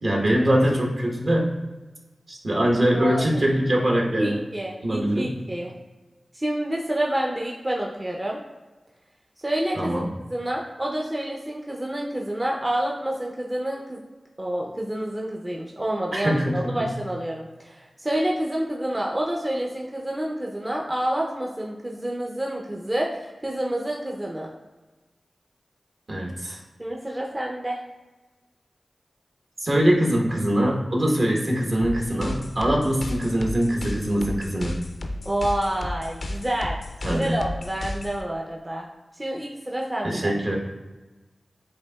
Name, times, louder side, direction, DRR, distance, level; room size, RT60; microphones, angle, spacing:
voice 1, 0.0-1.6 2.3-4.4 4.8-5.4 9.8-10.1 16.1-16.8 26.1-26.6 29.6-34.8 37.0-37.4 40.0-40.6, equal, 60° right, -2 dB, 1.1 m, -23 dB
voice 2, 4.2-5.7 6.3-8.4 9.4-14.0 14.4-24.5 26.8-27.8 35.2-36.8 37.1-38.9 39.1-40.3, right 1 dB, 25° right, -2 dB, 0.6 m, -28 dB
sound 1, 31.8-38.2, left 1 dB, 70° left, 0.5 m, -33 dB
7.9 x 2.7 x 2.3 m, 1.2 s
cardioid pair, 50°, 0 cm